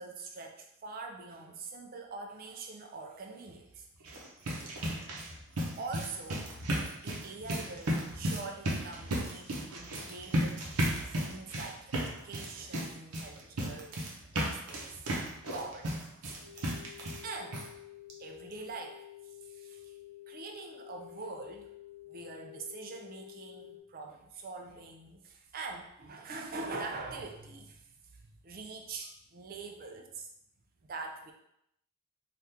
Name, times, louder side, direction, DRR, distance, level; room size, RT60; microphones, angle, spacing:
voice 1, 0.0-4.1 5.8-6.5 7.0-14.0 14.3-14.9 15.4-16.8 17.2-17.6 18.2-20.0 20.3-21.7 22.1-30.3 30.9-31.3, right 3 dB, 40° right, 2 dB, 0.4 m, -44 dB
sound 1, 3.9-17.3 17.5-17.7 18.1-18.2 18.5-18.6, right 1 dB, 85° right, 0.7 m, -35 dB
sound 2, 16.4-23.8, left 15 dB, 50° left, 0.8 m, -50 dB
3.5 x 2.4 x 2.8 m, 0.78 s
head